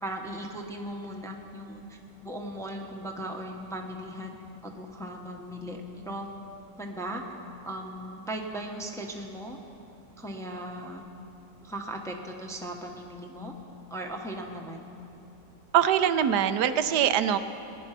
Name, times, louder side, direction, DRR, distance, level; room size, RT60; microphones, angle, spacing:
voice 1, 0.0-4.4 4.6-6.3 6.8-7.2 7.6-9.6 10.2-11.0 11.6-13.5 13.9-14.9, right 1 dB, ahead, 1 dB, 0.8 m, -38 dB
voice 2, 15.7-17.4, right 9 dB, 70° right, 11 dB, 1.2 m, -23 dB
20.0 x 10.0 x 5.9 m, 2.8 s
omnidirectional pair, 1.9 m